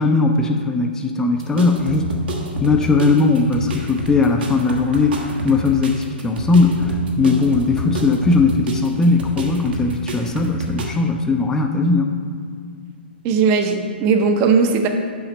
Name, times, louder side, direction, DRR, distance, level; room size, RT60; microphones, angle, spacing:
voice 1, 0.0-2.2 2.6-12.2, left 3 dB, 10° left, 3 dB, 0.4 m, -18 dB
sound 1, 1.4-10.9, equal, 60° right, 1.2 m, -29 dB
voice 2, 13.2-14.9, right 5 dB, 35° right, 5 dB, 0.7 m, -17 dB
7.0 x 5.0 x 5.3 m, 2.2 s
hypercardioid pair, 125°, 6 cm